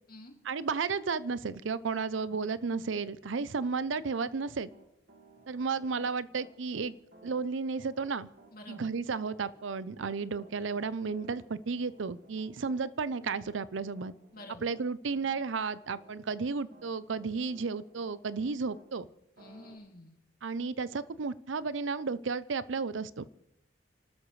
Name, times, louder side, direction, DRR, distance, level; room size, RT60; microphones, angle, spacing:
voice 1, 0.4-4.7 5.5-6.9 7.2-8.3 8.7-14.1 14.6-19.1 20.4-23.3, right 4 dB, 75° right, 17 dB, 0.6 m, -33 dB
Piano, 3.7-18.9 19.4-19.7, right 2 dB, 55° right, 1.9 m, -58 dB
voice 2, 8.5-8.9 14.3-14.7 19.4-20.2, left 1 dB, 45° left, 2 dB, 2.5 m, -49 dB
30.0 x 13.0 x 3.2 m, 0.79 s
head